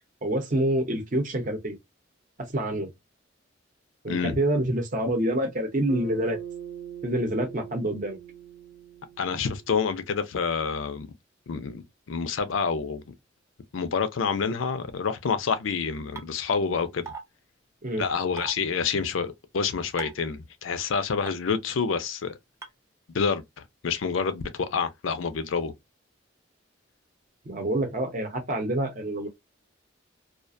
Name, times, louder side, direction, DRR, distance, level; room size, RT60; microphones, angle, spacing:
voice 1, 0.2-1.8 2.5-2.9 4.0-6.4 7.0-8.2 17.8-18.1 27.5-29.3, right 1 dB, 40° right, 0.7 m, -27 dB
voice 2, 4.1-4.4 9.2-11.1 11.5-13.0 13.7-17.1 18.0-22.3 23.1-23.4 23.8-25.7, left 5 dB, 85° left, 0.5 m, -28 dB
Bass guitar, 5.9-10.3, right 9 dB, 75° right, 0.9 m, -41 dB
sound 1, 16.2-16.3 17.1-17.2 18.4-18.5 20.0-20.2 21.3-21.4 22.6-22.7, right 5 dB, 15° right, 0.4 m, -37 dB
2.4 x 2.1 x 2.5 m
head